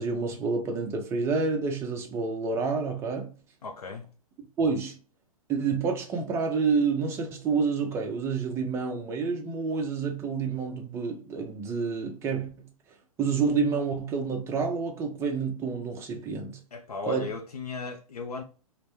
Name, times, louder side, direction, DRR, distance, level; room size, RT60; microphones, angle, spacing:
voice 1, 0.0-3.3 4.6-4.9 5.5-12.7 13.2-16.6 17.1-17.3, right 5 dB, 15° right, 0.4 m, -28 dB
voice 2, 3.6-4.0 16.7-18.4, left 5 dB, 90° left, 0.4 m, -36 dB
2.1 x 2.1 x 2.9 m
hypercardioid pair, 120°, 19 cm